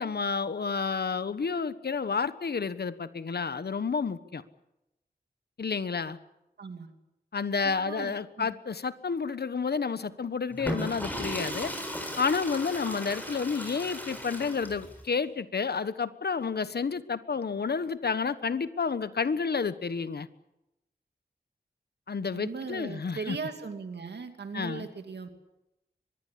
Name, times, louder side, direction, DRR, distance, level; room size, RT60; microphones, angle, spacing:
voice 1, 0.0-4.4 5.6-6.2 7.3-11.7 12.2-20.3 22.1-23.4 24.5-24.9, left 5 dB, 75° left, 14 dB, 1.2 m, -30 dB
voice 2, 6.6-6.9 7.6-8.5 22.3-25.4, right 4 dB, 90° right, 6 dB, 2.6 m, -38 dB
Water / Toilet flush, 10.5-15.0, equal, 10° left, 7.4 m, -36 dB
24.0 x 21.0 x 8.5 m, 0.90 s
cardioid pair, 50°, 17 cm